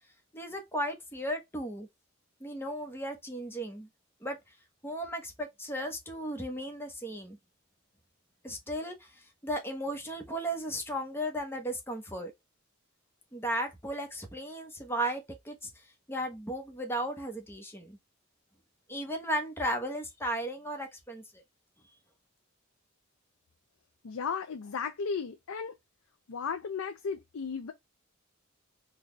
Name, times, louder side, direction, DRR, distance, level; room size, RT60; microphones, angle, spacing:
voice 1, 0.3-1.9 2.4-3.9 4.2-4.4 4.8-7.4 8.4-12.3 13.3-15.7 16.1-18.0 18.9-21.4, right 1 dB, 10° left, 1.0 m, -35 dB
voice 2, 24.0-25.7 26.3-27.7, left 5 dB, 75° left, 0.5 m, -35 dB
4.0 x 2.4 x 3.1 m
head